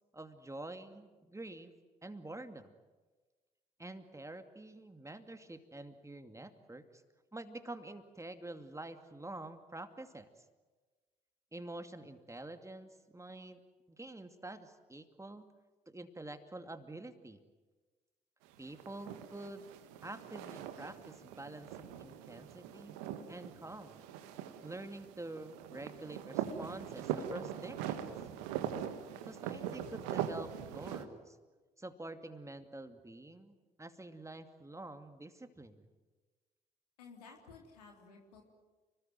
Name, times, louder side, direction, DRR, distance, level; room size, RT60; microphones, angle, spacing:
voice 1, 0.1-1.7 2.0-2.7 3.8-7.0 7.3-10.3 11.5-13.6 13.9-15.5 15.9-17.4 18.6-19.7 20.0-23.0 23.3-24.1 24.6-28.1 29.3-31.4 31.8-35.9, right 2 dB, 15° right, 8 dB, 2.5 m, -47 dB
sound 1, 18.5-31.0, right 10 dB, 70° right, 1.6 m, -42 dB
voice 2, 37.0-38.4, left 5 dB, 80° left, 2 dB, 3.5 m, -55 dB
29.5 x 20.5 x 9.2 m, 1.3 s
figure-of-eight pair, 40°, 20 cm